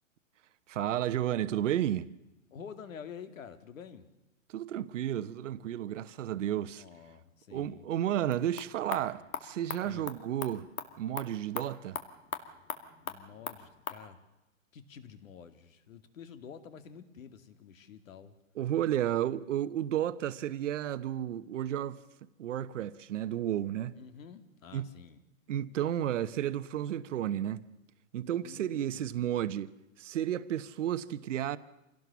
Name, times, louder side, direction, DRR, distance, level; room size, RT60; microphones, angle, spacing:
voice 1, 0.7-2.1 4.5-6.8 7.5-10.7 11.0-12.0 18.6-22.0 22.4-23.9 24.7-24.9 25.5-27.7 28.1-29.7 30.0-31.6, right 11 dB, 60° right, 1.1 m, -32 dB
voice 2, 2.5-4.1 6.8-7.9 9.8-10.1 13.1-14.2 14.7-18.3 24.0-25.2 28.4-29.1, left 7 dB, 70° left, 2.4 m, -49 dB
sound 1, 8.2-14.0, left 7 dB, 90° left, 2.4 m, -42 dB
26.5 x 17.5 x 7.0 m
hypercardioid pair, 160°, 41 cm